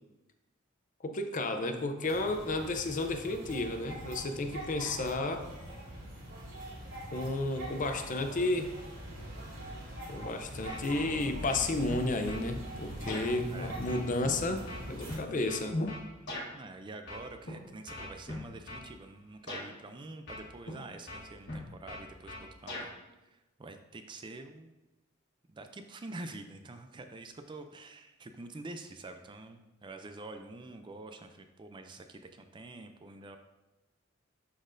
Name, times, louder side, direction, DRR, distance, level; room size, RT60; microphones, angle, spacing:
voice 1, 1.0-5.5 7.1-8.8 10.1-14.6 14.9-15.9, left 2 dB, 40° left, 7 dB, 0.5 m, -32 dB
sound 1, 2.0-15.2, right 1 dB, 90° right, 2.1 m, -43 dB
sound 2, 10.7-11.2 11.5-12.5 13.1-13.3 13.9-16.5 17.1-17.5 17.9-18.9 19.5-19.7 20.3-20.8 21.1-22.9, left 1 dB, 60° left, 1.5 m, -41 dB
voice 2, 16.5-22.9 23.2-24.7 25.5-33.4, right 2 dB, 25° right, 7 dB, 0.4 m, -47 dB
11.5 x 4.0 x 2.6 m, 1.0 s
head